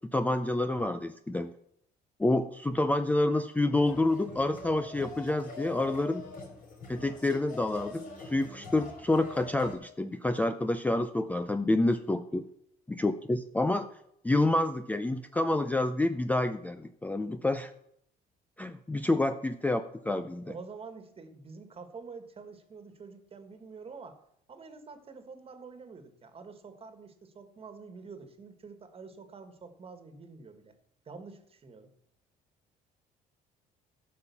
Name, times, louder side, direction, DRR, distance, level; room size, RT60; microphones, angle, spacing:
voice 1, 0.1-1.5 2.2-6.2 6.9-12.5 12.9-13.9 14.2-17.7 18.6-20.5, left 2 dB, 10° left, 9 dB, 0.5 m, -28 dB
sound 1, 3.8-9.8, left 3 dB, 55° left, 4.4 m, -44 dB
voice 2, 20.4-24.2 24.5-30.7 31.0-31.9, right 4 dB, 35° right, 8 dB, 1.6 m, -47 dB
12.5 x 5.3 x 7.0 m, 0.73 s
cardioid pair, 110°, 17 cm